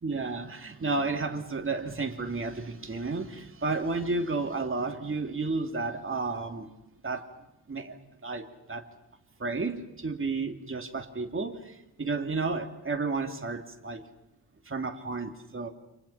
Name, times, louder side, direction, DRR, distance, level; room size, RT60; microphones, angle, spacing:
voice 1, 0.0-6.7 7.0-7.3 7.7-8.9 9.4-14.1 14.6-15.7, right 3 dB, 30° right, 2.9 m, -32 dB
29.5 x 27.5 x 5.8 m
wide cardioid pair, 135°, 39 cm